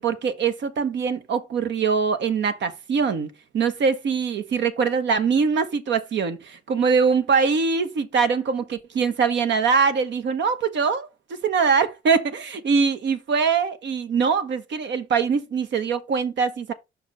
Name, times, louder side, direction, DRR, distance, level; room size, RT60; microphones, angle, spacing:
voice 1, 0.0-16.7, right 5 dB, 65° right, 1.1 m, -23 dB
5.6 x 4.8 x 4.9 m
cardioid pair, 90°, 20 cm